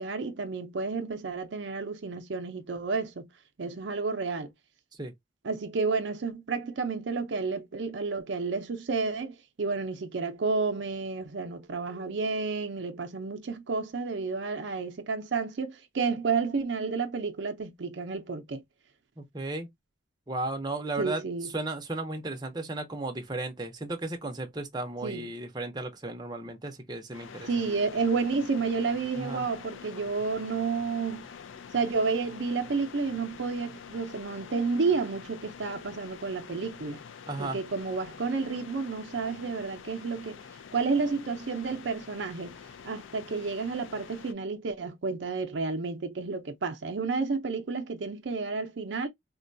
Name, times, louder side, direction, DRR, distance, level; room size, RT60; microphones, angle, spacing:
voice 1, 0.0-3.3 3.6-4.5 5.4-18.6 21.0-21.5 25.0-25.3 27.4-31.2 31.7-37.0 37.4-40.4 40.7-42.5 42.8-49.1, right 4 dB, 65° right, 0.5 m, -31 dB
voice 2, 19.2-19.7 20.3-21.2 21.5-27.7 29.2-29.4 37.3-37.6, right 2 dB, 20° right, 0.6 m, -35 dB
sound 1, 27.1-44.3, left 6 dB, 75° left, 0.4 m, -46 dB
3.7 x 2.2 x 2.5 m
head